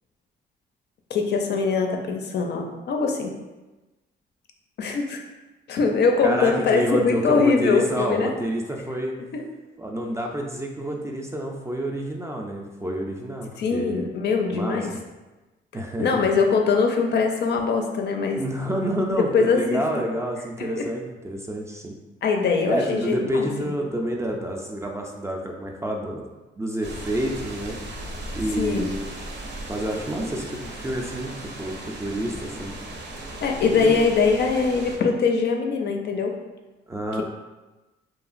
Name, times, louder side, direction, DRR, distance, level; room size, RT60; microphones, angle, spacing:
voice 1, 1.1-3.3 4.8-5.2 5.7-8.3 9.3-9.5 13.6-14.9 16.0-18.4 19.1-19.8 20.6-20.9 22.2-23.7 28.6-28.9 33.4-36.3, left 5 dB, 60° left, 3 dB, 0.5 m, -22 dB
voice 2, 6.2-9.1 9.8-14.1 14.5-14.8 15.7-16.1 18.4-22.0 22.7-26.2 26.6-27.8 28.3-29.1 29.7-32.8 33.7-34.0 36.9-37.2, right 1 dB, 15° right, 0 dB, 0.3 m, -28 dB
sound 1, 26.8-35.0, right 1 dB, 60° right, 0.6 m, -37 dB
2.9 x 2.4 x 2.5 m, 1.1 s
cardioid pair, 90°, 20 cm